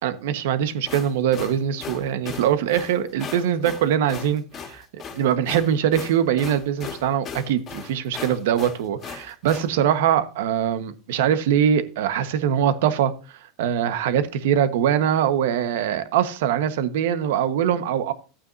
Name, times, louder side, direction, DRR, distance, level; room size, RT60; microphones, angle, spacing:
voice 1, 0.0-4.8 5.1-13.1 13.6-18.1, right 9 dB, 80° right, 1.3 m, -22 dB
sound 1, 0.7-9.7, left 6 dB, 30° left, 1.9 m, -37 dB
14.0 x 9.0 x 2.7 m
supercardioid pair, 140°, 0 cm